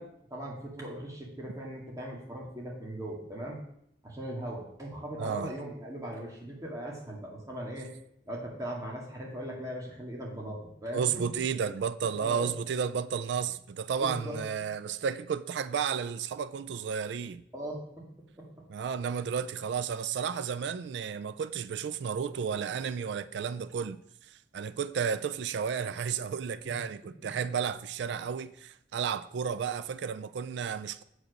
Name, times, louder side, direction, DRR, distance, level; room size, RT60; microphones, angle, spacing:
voice 1, 0.0-3.6 4.0-7.9 8.3-11.3 12.2-12.5 14.0-14.4 17.5-17.8 18.4-18.7 26.6-26.8, right 1 dB, 20° right, 2.0 m, -39 dB
voice 2, 5.2-5.5 10.9-17.4 18.7-24.0 24.3-31.0, right 7 dB, 70° right, 0.3 m, -32 dB
7.4 x 5.0 x 6.5 m
head